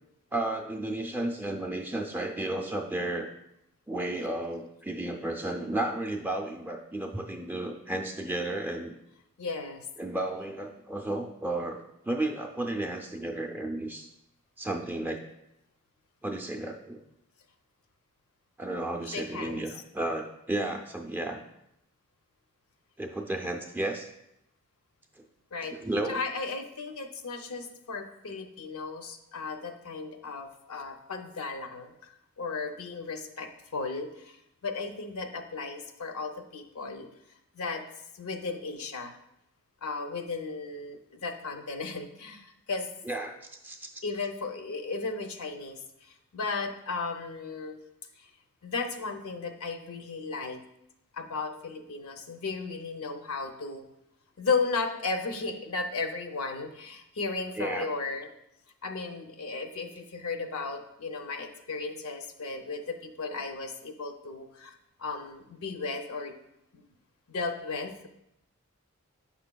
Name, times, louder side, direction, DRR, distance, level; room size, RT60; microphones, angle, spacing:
voice 1, 0.3-3.3 3.9-9.0 10.0-14.1 14.6-15.3 16.2-17.0 18.6-21.4 23.0-24.1 25.7-26.2 43.0-43.4 43.6-43.9 57.6-57.9, right 1 dB, 10° right, 3 dB, 0.4 m, -33 dB
voice 2, 9.4-9.9 19.1-19.6 25.5-25.8 26.1-31.9 32.4-37.1 37.5-37.9 38.1-39.2 39.8-42.9 44.0-47.8 48.2-48.3 48.6-50.6 51.1-53.9 54.4-58.3 58.8-66.4 66.7-66.8 67.3-68.1, left 4 dB, 75° left, 6 dB, 0.6 m, -35 dB
8.1 x 5.7 x 2.2 m, 0.80 s
head